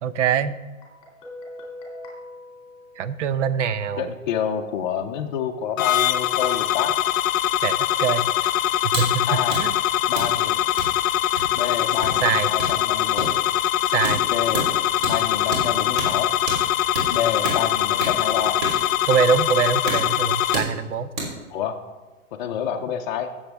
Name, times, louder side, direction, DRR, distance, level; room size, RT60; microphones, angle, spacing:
voice 1, 0.0-0.6 3.0-4.1 7.6-8.3 8.8-9.7 12.2-12.5 13.9-14.2 19.1-21.1, right 7 dB, 60° right, 14 dB, 0.8 m, -23 dB
Guitar, 0.8-3.6, left 1 dB, 10° left, 2.4 m, -41 dB
voice 2, 4.0-6.9 9.2-9.6 10.1-10.6 11.5-13.4 14.3-14.7 15.1-16.3 17.1-18.6 21.5-21.8 22.4-23.3, left 8 dB, 35° left, 1 dB, 0.6 m, -28 dB
sound 1, 5.8-20.6, left 12 dB, 75° left, 0.7 m, -22 dB
sound 2, 8.9-9.1 9.4-21.5, right 1 dB, 35° right, 3.2 m, -32 dB
16.5 x 7.2 x 3.4 m, 1.2 s
hypercardioid pair, 155°, 41 cm